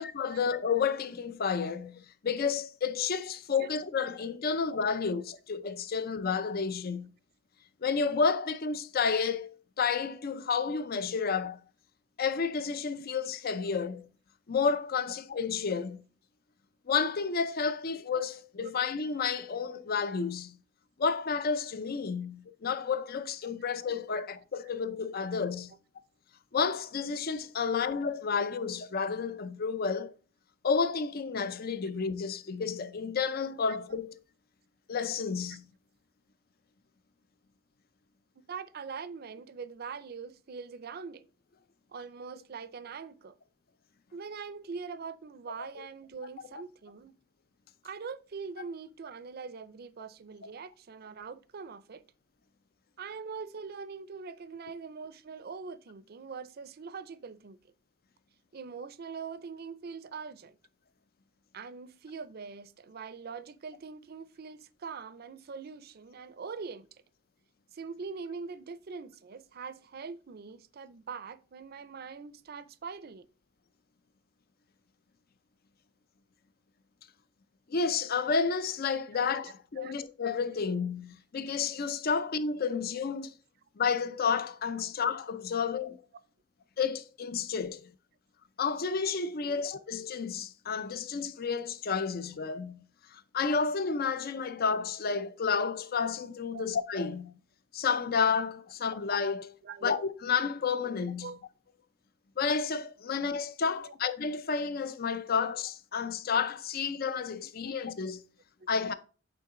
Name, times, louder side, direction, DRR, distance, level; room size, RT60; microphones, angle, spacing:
voice 1, 0.0-7.1 7.8-11.6 12.2-14.1 14.5-16.0 16.9-20.6 21.0-25.7 26.5-30.1 30.6-34.2 34.9-35.6 77.7-83.3 83.8-86.0 86.8-87.9 88.6-92.8 93.1-97.3 97.7-99.5 99.8-101.3 102.4-108.2 108.7-108.9, left 5 dB, 50° left, 0.5 m, -31 dB
voice 2, 38.5-41.3 41.9-43.4 44.1-47.1 47.8-52.0 53.0-57.6 58.5-60.6 61.5-67.0 67.7-73.3 79.8-79.9 89.5-89.6 96.5-96.6 99.6-99.9 101.2-101.4 103.7-103.9 107.4-107.5, right 5 dB, 55° right, 0.5 m, -43 dB
8.4 x 3.7 x 3.7 m
head